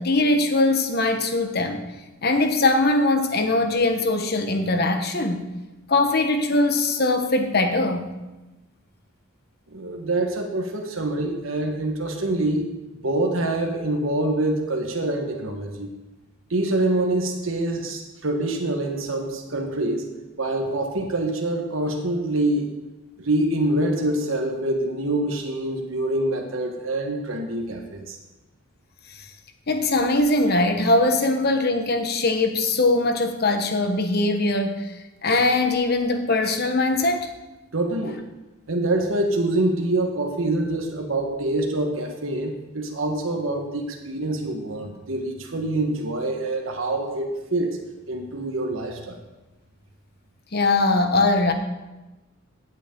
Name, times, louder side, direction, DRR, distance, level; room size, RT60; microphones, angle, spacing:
voice 1, 0.0-1.8 2.2-5.4 5.9-8.1 29.7-34.9 35.2-37.3 50.5-51.5, left 2 dB, 50° left, 6 dB, 1.2 m, -21 dB
voice 2, 9.7-12.7 13.0-15.9 16.5-20.1 20.4-22.7 23.2-28.2 37.7-38.1 38.7-47.8 48.1-49.2, right 2 dB, 75° right, 2 dB, 1.4 m, -25 dB
16.0 x 8.2 x 3.8 m, 1.1 s
head